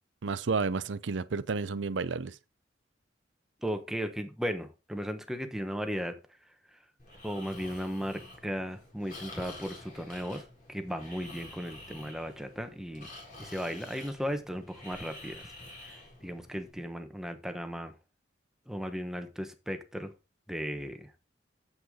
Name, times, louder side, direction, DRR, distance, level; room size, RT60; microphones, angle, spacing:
voice 1, 0.2-2.4, right 4 dB, 75° right, 0.6 m, -31 dB
voice 2, 3.6-6.2 7.2-10.4 10.7-13.1 13.4-15.5 15.8-17.9 18.7-20.1 20.5-21.1, equal, 5° right, 1.0 m, -36 dB
Breathing, 7.0-16.7, left 2 dB, 45° left, 4.1 m, -49 dB
8.2 x 7.9 x 3.7 m
head